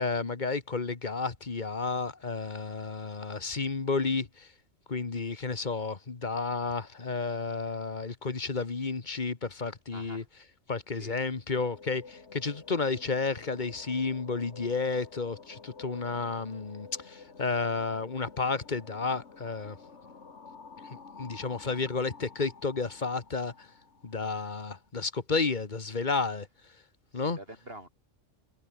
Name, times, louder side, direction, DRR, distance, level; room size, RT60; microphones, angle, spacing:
voice 1, 0.0-4.5 4.9-10.2 10.7-19.8 20.9-23.7 24.0-26.5 27.1-27.4, left 4 dB, 35° left, 1.6 m, -32 dB
voice 2, 9.9-10.3 10.9-11.2 27.1-27.9, right 1 dB, 50° right, 7.6 m, -47 dB
sound 1, 11.7-24.9, left 4 dB, 60° left, 2.3 m, -50 dB
omnidirectional pair, 1.3 m